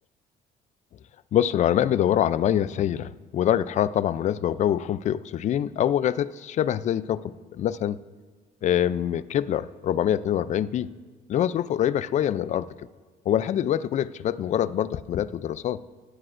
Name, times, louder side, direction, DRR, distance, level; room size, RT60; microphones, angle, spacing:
voice 1, 1.3-8.0 8.6-10.9 11.3-12.9 13.3-15.8, left 10 dB, 45° left, 17 dB, 0.4 m, -25 dB
17.0 x 9.9 x 2.5 m, 1.5 s
cardioid pair, 110°, 17 cm